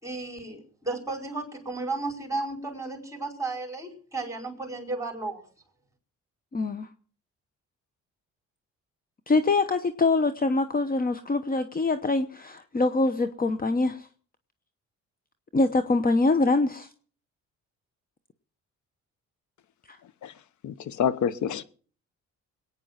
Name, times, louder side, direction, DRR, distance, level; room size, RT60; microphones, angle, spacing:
voice 1, 0.0-5.4, right 3 dB, 10° right, 4.9 m, -33 dB
voice 2, 6.5-6.9 9.3-14.1 15.5-16.9 19.9-20.0, left 3 dB, 30° left, 1.0 m, -24 dB
voice 3, 20.6-21.6, left 8 dB, 70° left, 1.0 m, -27 dB
21.5 x 9.3 x 5.8 m
cardioid pair, 90°, 30 cm